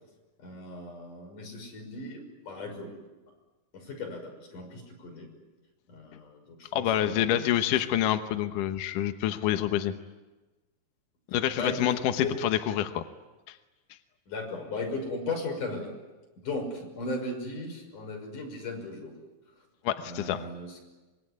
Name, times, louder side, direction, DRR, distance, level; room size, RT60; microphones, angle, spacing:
voice 1, 0.4-3.0 3.7-5.3 5.9-8.0 11.6-12.3 14.3-15.9 16.4-19.2 20.0-20.9, left 2 dB, 45° left, 2 dB, 7.5 m, -37 dB
voice 2, 6.7-9.9 11.3-13.0 13.5-13.6 19.8-20.4, left 11 dB, 75° left, 7 dB, 1.9 m, -27 dB
25.5 x 23.5 x 9.7 m, 1.2 s
omnidirectional pair, 5.4 m